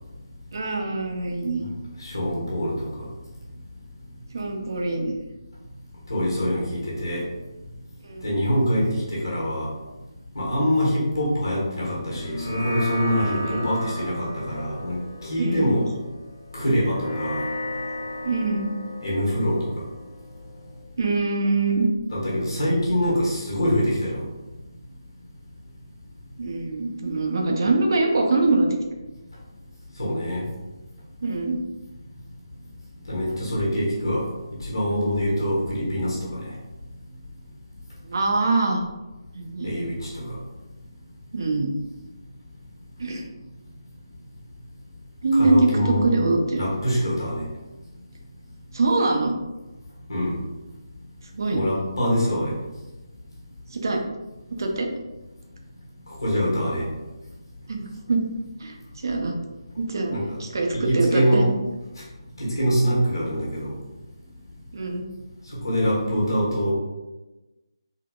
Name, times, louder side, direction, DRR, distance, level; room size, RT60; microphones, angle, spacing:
voice 1, 0.5-1.7 4.3-5.1 8.0-8.3 13.2-13.7 15.4-15.7 18.2-18.7 21.0-21.9 26.4-28.8 31.2-31.6 38.1-38.8 39.3-39.8 41.3-41.7 43.0-43.2 45.2-46.7 48.7-49.4 51.3-51.6 53.7-54.0 54.6-54.9 57.7-58.2 58.6-59.4 59.8-61.5 64.7-65.1, right 3 dB, 45° right, 2 dB, 0.5 m, -23 dB
voice 2, 2.0-3.1 6.1-7.2 8.2-9.7 10.3-15.9 16.5-17.5 19.0-19.8 22.1-24.2 30.0-30.5 33.1-34.3 34.6-36.4 39.6-40.4 45.3-46.1 46.5-47.4 50.1-50.4 51.5-52.5 56.2-56.9 60.1-60.4 60.7-61.5 62.4-63.7 65.5-66.7, equal, 55° left, -6 dB, 1.4 m, -24 dB
sound 1, 12.1-20.8, left 1 dB, 30° left, 0.8 m, -35 dB
3.7 x 2.8 x 2.3 m, 1.1 s
figure-of-eight pair, 150°, 3 cm